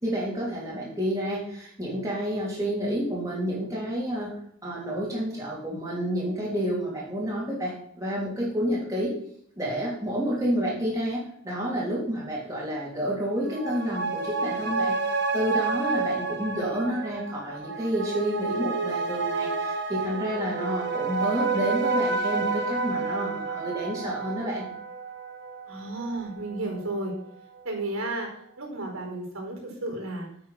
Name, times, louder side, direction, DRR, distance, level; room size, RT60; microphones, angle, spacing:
voice 1, 0.0-4.3 4.6-9.1 9.6-24.6, equal, 15° right, -5 dB, 3.3 m, -29 dB
sound 1, 13.3-26.2 26.5-26.6, right 4 dB, 55° right, 1.6 m, -29 dB
voice 2, 25.7-27.1 27.6-28.3 28.6-30.3, right 2 dB, 90° right, 0 dB, 4.7 m, -32 dB
9.1 x 8.3 x 5.8 m, 0.68 s
head